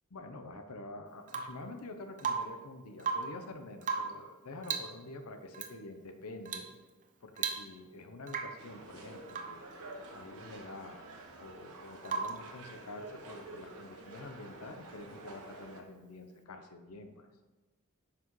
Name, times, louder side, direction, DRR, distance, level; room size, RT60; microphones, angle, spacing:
voice 1, 0.1-6.7 7.2-11.0 11.4-17.3, left 2 dB, 85° left, 6 dB, 0.8 m, -47 dB
Rain / Water tap faucet / Drip, 1.3-1.7 2.2-2.7 3.0-3.4 3.8-4.3 4.6-5.0 5.5-5.7 6.5-6.8 7.0-7.1 7.4-7.9 8.3-8.7 9.3-9.6 12.1-12.5 14.4-14.5, right 5 dB, 35° right, 0.6 m, -36 dB
sound 1, 8.6-15.8, right 2 dB, 75° right, 1.2 m, -49 dB
9.8 x 5.8 x 3.2 m, 1.2 s
head